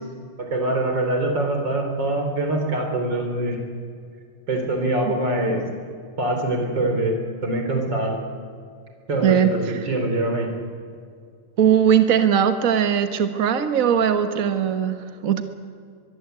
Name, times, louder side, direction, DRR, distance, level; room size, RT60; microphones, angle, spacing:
voice 1, 0.4-3.6 4.5-5.6 6.2-8.2 9.1-10.5, right 1 dB, 35° right, 4 dB, 4.3 m, -24 dB
voice 2, 11.6-15.4, right 8 dB, 75° right, 8 dB, 0.7 m, -19 dB
23.5 x 22.5 x 8.2 m, 2.2 s
omnidirectional pair, 3.6 m